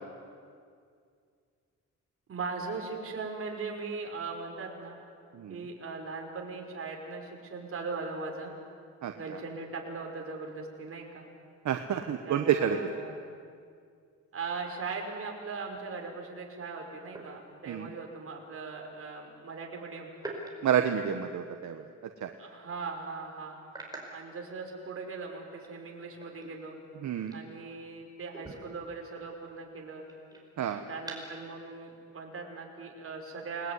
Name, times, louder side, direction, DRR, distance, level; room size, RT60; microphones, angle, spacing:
voice 1, 2.3-5.0 5.5-8.5 9.2-11.3 12.2-13.1 14.3-20.1 22.4-23.6 24.1-26.7 27.3-30.0 30.9-33.7, right 4 dB, 50° right, 1 dB, 5.4 m, -39 dB
voice 2, 11.6-12.8 17.7-17.9 20.6-21.8 22.2-22.3 27.0-27.3 30.6-30.8, right 9 dB, 70° right, 6 dB, 1.4 m, -29 dB
sound 1, 15.7-15.9 17.1-18.0 20.2-21.8 22.2-22.4 22.8-22.9 23.6-25.1 25.5-28.0 28.3-31.5, right 2 dB, 15° right, 5.1 m, -47 dB
29.0 x 20.5 x 9.7 m, 2.3 s
wide cardioid pair, 145°, 30 cm